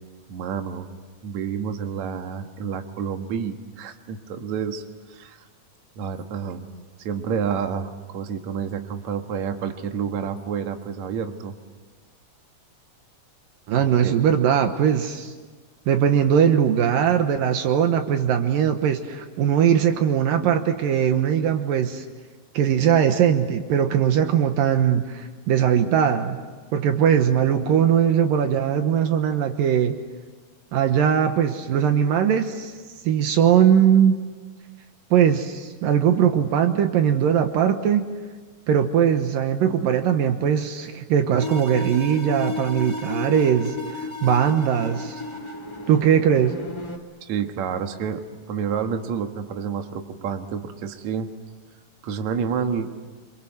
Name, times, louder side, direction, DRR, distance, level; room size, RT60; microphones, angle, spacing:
voice 1, 0.3-0.9 1.2-5.5 6.0-6.6 7.0-11.5 13.7-14.2 47.2-48.2 48.5-51.3 52.0-52.9, right 7 dB, 60° right, 5 dB, 2.6 m, -29 dB
voice 2, 13.7-15.3 15.9-22.1 22.5-26.4 26.7-30.0 30.7-32.7 33.0-34.2 35.1-38.1 38.7-45.2 45.9-46.6, right 8 dB, 75° right, 7 dB, 2.9 m, -20 dB
sound 1, 41.4-47.0, left 3 dB, 10° left, 2.1 m, -33 dB
27.5 x 26.0 x 8.0 m, 1.5 s
omnidirectional pair, 4.1 m